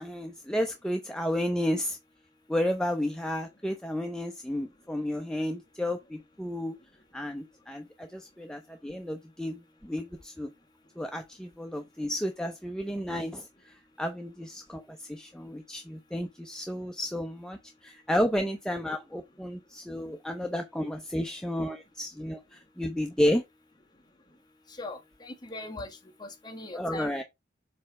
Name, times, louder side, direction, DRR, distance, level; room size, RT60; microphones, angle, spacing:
voice 1, 0.0-2.0 2.5-6.7 7.1-10.5 11.0-23.4 26.7-27.2, equal, 5° left, 0.5 m, -32 dB
voice 2, 24.7-25.9 26.2-27.2, left 2 dB, 25° left, 1.5 m, -40 dB
7.5 x 3.2 x 4.7 m
head